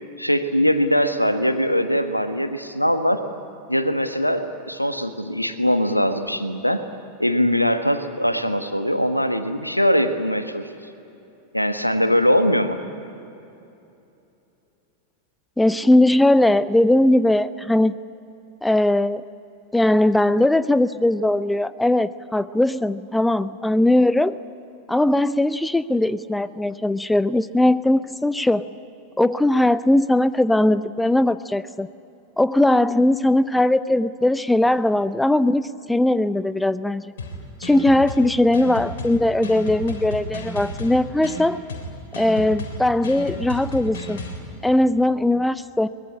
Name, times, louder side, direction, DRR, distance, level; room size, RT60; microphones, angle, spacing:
voice 1, 0.2-3.2 3.7-6.8 7.2-10.7 11.5-12.8, equal, 90° left, 9 dB, 1.3 m, -21 dB
voice 2, 15.6-18.0 18.6-19.2 19.7-24.3 24.9-28.7 29.2-31.9 32.4-37.0 37.6-41.6 42.2-44.2 44.6-45.9, left 1 dB, 5° left, 16 dB, 0.6 m, -19 dB
sound 1, 37.2-44.4, left 1 dB, 60° left, 3.8 m, -33 dB
23.0 x 20.5 x 9.8 m, 2.8 s
figure-of-eight pair, 90°, 0 cm